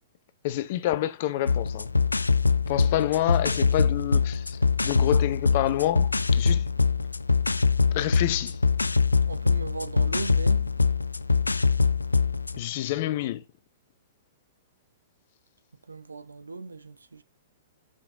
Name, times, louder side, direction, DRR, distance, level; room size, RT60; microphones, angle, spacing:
voice 1, 0.4-1.9 2.7-6.6 7.9-8.6 12.6-13.4, left 14 dB, 45° left, 0.9 m, -28 dB
sound 1, 1.5-12.6, left 4 dB, 80° left, 0.5 m, -23 dB
voice 2, 9.3-10.7 15.9-17.2, right 3 dB, 75° right, 1.0 m, -37 dB
7.0 x 5.7 x 7.3 m
figure-of-eight pair, 110°, 0 cm